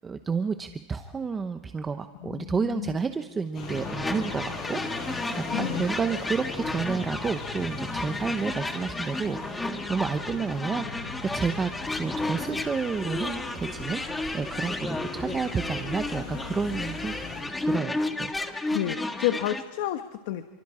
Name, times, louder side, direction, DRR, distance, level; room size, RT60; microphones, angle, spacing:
voice 1, 0.0-5.0 5.6-11.7 12.0-17.2 17.6-18.3, right 5 dB, 15° right, 8 dB, 0.8 m, -30 dB
voice 2, 2.2-3.0 5.5-5.9 18.7-20.5, left 13 dB, 65° left, 8 dB, 1.3 m, -30 dB
sound 1, 3.5-17.4, left 4 dB, 35° left, 7.0 m, -39 dB
sound 2, 3.7-19.6, left 2 dB, 10° left, 1.5 m, -33 dB
29.5 x 24.0 x 5.0 m, 1.2 s
supercardioid pair, 155°, 0 cm